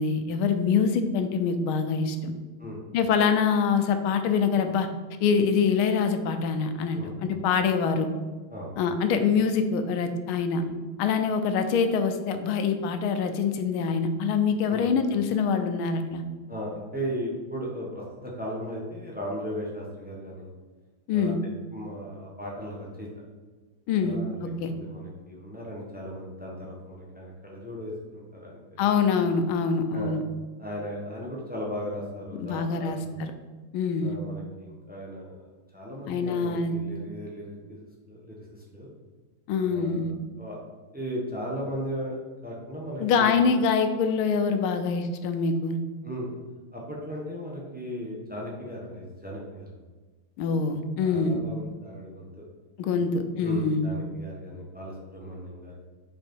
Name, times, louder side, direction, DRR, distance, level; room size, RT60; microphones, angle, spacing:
voice 1, 0.0-2.3 2.9-4.9 5.2-8.1 8.8-10.6 11.0-16.2 21.1-21.4 23.9-24.7 28.8-30.2 32.4-33.3 33.7-34.2 36.1-36.8 39.5-40.1 43.0-45.8 50.4-51.4 52.8-54.0, left 5 dB, 90° left, 8 dB, 1.5 m, -25 dB
voice 2, 6.9-7.4 8.5-8.7 14.7-14.9 16.5-20.5 21.1-21.4 21.7-23.1 24.0-24.5 24.8-28.5 28.8-29.0 29.9-30.2 30.6-32.9 34.0-35.3 35.7-37.8 38.1-38.9 39.6-40.1 40.4-40.6 40.9-42.1 42.4-43.3 46.0-46.3 46.7-49.7 51.0-52.3 53.0-53.1 53.4-55.8, equal, 10° right, -3 dB, 0.6 m, -36 dB
5.3 x 4.9 x 4.5 m, 1.3 s
omnidirectional pair, 2.2 m